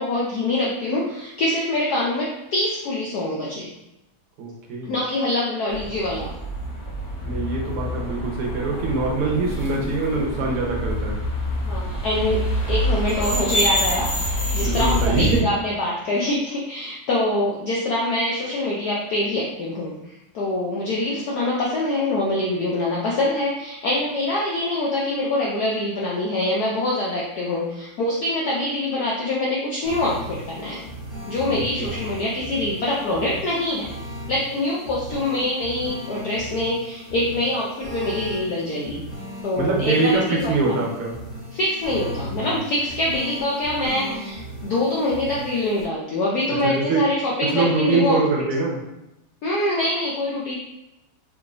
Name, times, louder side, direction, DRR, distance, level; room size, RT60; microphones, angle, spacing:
voice 1, 0.0-3.7 4.8-6.3 11.6-12.4 12.7-14.1 14.5-19.9 20.3-30.8 31.3-33.9 34.3-39.0 39.4-40.8 41.5-48.2 49.4-50.5, left 1 dB, 75° left, -4 dB, 0.9 m, -24 dB
voice 2, 4.4-4.9 7.3-11.2 14.6-15.5 31.8-31.9 39.6-41.2 46.6-47.0 47.4-48.8, right 3 dB, 80° right, -1 dB, 1.9 m, -23 dB
sound 1, 5.7-15.4, equal, 40° left, 0.7 m, -26 dB
sound 2, 29.8-45.8, equal, 10° left, 1.0 m, -36 dB
4.7 x 3.6 x 2.5 m, 0.90 s
omnidirectional pair, 2.4 m